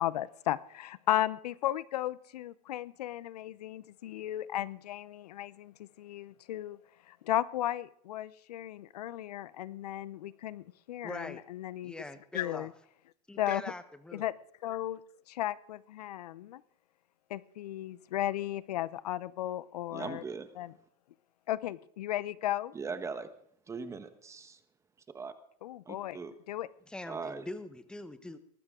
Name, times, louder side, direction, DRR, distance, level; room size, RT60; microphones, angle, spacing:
voice 1, 0.0-6.8 7.1-11.9 12.3-12.7 13.4-13.6 14.1-14.3 14.6-15.0 15.3-16.6 17.3-20.2 20.6-20.7 21.5-22.7 25.6-26.2 26.5-26.7, left 13 dB, 80° left, 20 dB, 0.7 m, -35 dB
voice 2, 11.0-11.4 11.8-12.7 13.3-14.3 26.9-28.4, left 2 dB, 5° left, 11 dB, 1.0 m, -43 dB
voice 3, 19.9-20.5 22.7-23.3 23.7-24.6 25.1-25.3 25.9-26.3 27.1-27.5, right 5 dB, 15° right, 11 dB, 1.2 m, -40 dB
19.5 x 14.0 x 3.7 m, 0.65 s
supercardioid pair, 135°, 20 cm